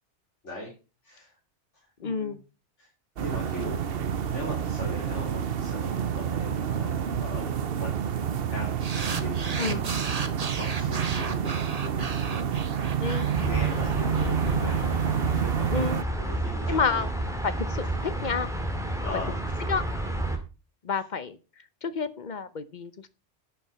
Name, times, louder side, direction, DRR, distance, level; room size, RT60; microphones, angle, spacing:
voice 1, 1.0-1.4 1.7-2.4 2.8-2.9 3.2-3.9 4.3-8.1 8.5-12.6 13.0-17.1 17.8-17.9 19.0-19.4, left 1 dB, 80° left, -3 dB, 3.7 m, -40 dB
voice 2, 2.0-2.4 9.6-9.8 13.0-13.3 15.7-16.0 16.7-17.1 17.4-18.5 19.7-19.9 20.8-21.4 21.8-23.1, left 5 dB, 45° left, 14 dB, 0.9 m, -29 dB
sound 1, 3.2-16.0, right 8 dB, 60° right, 1.0 m, -28 dB
sound 2, 8.8-15.3, right 4 dB, 35° right, 1.1 m, -36 dB
sound 3, 13.3-20.4, right 1 dB, 5° right, 2.2 m, -30 dB
11.5 x 6.7 x 5.7 m, 0.32 s
omnidirectional pair, 1.2 m